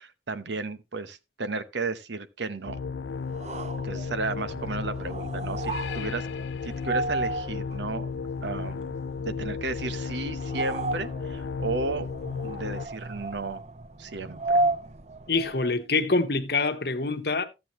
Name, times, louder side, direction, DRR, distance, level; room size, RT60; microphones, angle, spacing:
voice 1, 0.0-2.9 3.8-6.3 6.6-8.1 8.4-8.9 9.3-12.1 12.4-13.6 14.0-14.6, right 3 dB, 80° right, 0.9 m, -33 dB
sound 1, 2.7-12.9, left 5 dB, 80° left, 0.5 m, -34 dB
sound 2, 3.2-15.8, right 2 dB, 35° right, 0.6 m, -34 dB
voice 2, 15.3-17.4, left 3 dB, 60° left, 1.1 m, -25 dB
13.5 x 7.6 x 3.0 m
head